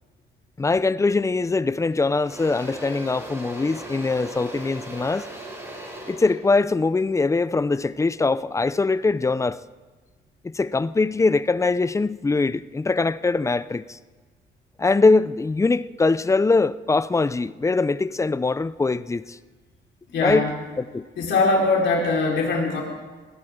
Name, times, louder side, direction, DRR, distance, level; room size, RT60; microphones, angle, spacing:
voice 1, 0.6-5.3 6.1-9.6 10.4-14.0 14.8-19.4 20.2-20.5 20.8-21.0, left 3 dB, 15° left, 0.4 m, -22 dB
Engine / Drill, 1.3-1.5 1.9-8.0, right 1 dB, 15° right, 6.3 m, -39 dB
voice 2, 20.1-20.5 21.2-22.8, left 3 dB, 70° left, 4.5 m, -21 dB
20.5 x 16.5 x 3.7 m
cardioid pair, 90°, 20 cm